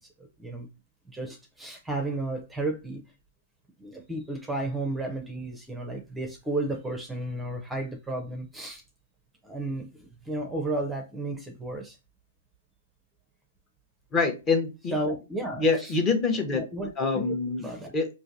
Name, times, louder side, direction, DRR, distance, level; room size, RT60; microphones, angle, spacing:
voice 1, 0.2-0.7 1.1-3.0 3.8-8.8 9.4-12.0 14.9-15.9 16.5-17.9, right 2 dB, 5° right, 0.6 m, -33 dB
voice 2, 14.1-15.0 15.6-16.6 17.0-18.1, left 4 dB, 25° left, 0.8 m, -26 dB
5.0 x 2.5 x 2.5 m
hypercardioid pair, 125°, 0 cm